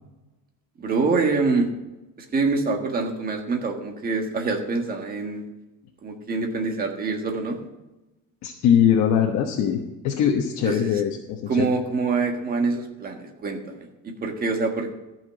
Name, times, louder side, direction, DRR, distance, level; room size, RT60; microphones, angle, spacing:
voice 1, 0.8-1.7 2.3-5.4 6.0-7.6 10.6-11.0 11.5-13.9 14.2-14.9, right 4 dB, 25° right, 3 dB, 1.5 m, -25 dB
voice 2, 8.4-9.8 10.0-11.7, left 9 dB, 50° left, 2 dB, 1.2 m, -21 dB
14.0 x 6.1 x 7.9 m, 1.0 s
cardioid pair, 170°, 35 cm